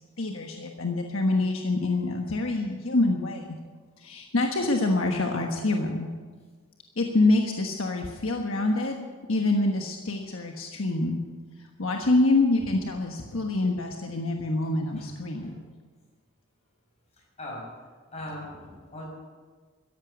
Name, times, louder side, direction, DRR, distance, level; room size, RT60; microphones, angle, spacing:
voice 1, 0.2-3.6 4.0-6.1 7.0-11.2 11.6-15.6, left 2 dB, 70° left, 2 dB, 1.3 m, -26 dB
voice 2, 18.1-19.1, left 1 dB, 30° left, -2 dB, 6.0 m, -39 dB
14.5 x 11.0 x 8.3 m, 1.5 s
head